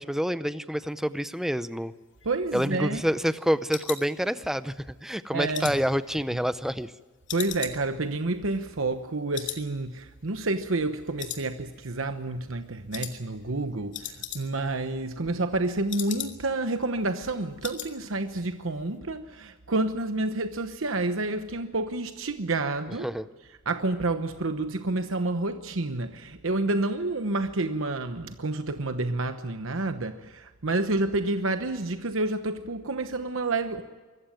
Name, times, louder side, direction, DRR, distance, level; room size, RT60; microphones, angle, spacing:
voice 1, 0.0-1.9 2.5-6.9 23.0-23.2, equal, ahead, 14 dB, 0.6 m, -28 dB
sound 1, 2.0-4.8 5.1-6.9 7.3-9.1 9.3-9.7 10.0-10.1 10.5-10.9 11.2-12.0 12.3-12.5 12.9-13.2 13.5-13.6 13.8-14.7 15.0-16.6 17.0-17.1 17.3-17.9 18.2-18.5 18.8-18.9, left 10 dB, 60° left, 2.4 m, -39 dB
voice 2, 2.2-3.0 5.3-5.8 7.3-23.1 23.7-33.8, right 2 dB, 70° right, 8 dB, 1.0 m, -29 dB
24.5 x 14.5 x 9.2 m, 1.3 s
head